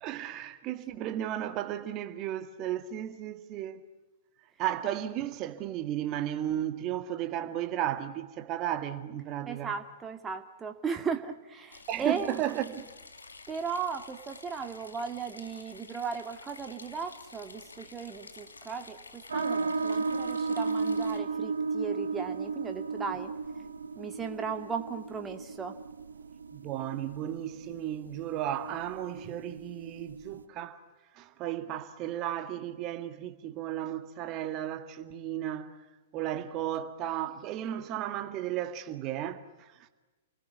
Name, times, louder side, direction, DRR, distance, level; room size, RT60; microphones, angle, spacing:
voice 1, 0.0-3.8 4.6-9.7 11.9-12.9 26.5-30.8 31.1-35.7 36.1-39.9, right 11 dB, 35° right, 1.9 m, -34 dB
voice 2, 9.5-12.4 13.5-23.3 24.0-25.8, right 6 dB, 15° right, 1.9 m, -36 dB
sound 1, 11.7-21.2, left 3 dB, 80° left, 2.4 m, -50 dB
sound 2, 19.3-30.4, right 4 dB, 75° right, 1.0 m, -35 dB
29.5 x 20.0 x 9.5 m
figure-of-eight pair, 105°, 0 cm